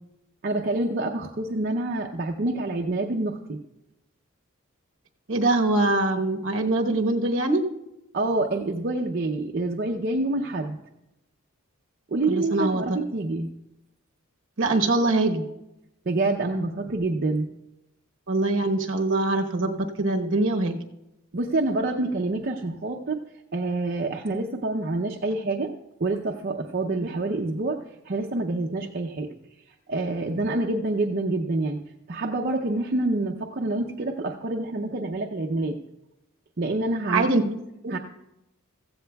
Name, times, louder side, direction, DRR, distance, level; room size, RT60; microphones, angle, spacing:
voice 1, 0.4-3.6 8.1-10.8 12.1-13.5 16.1-17.5 21.3-23.2 23.5-25.7 26.0-29.3 29.9-31.8 32.1-35.8 36.6-37.3 37.9-38.0, right 2 dB, 45° right, 1 dB, 0.6 m, -27 dB
voice 2, 5.3-7.6 12.3-13.0 14.6-15.4 18.3-20.8 37.1-37.6 37.8-38.0, right 2 dB, 60° right, 4 dB, 1.1 m, -23 dB
15.5 x 14.5 x 2.3 m, 0.91 s
head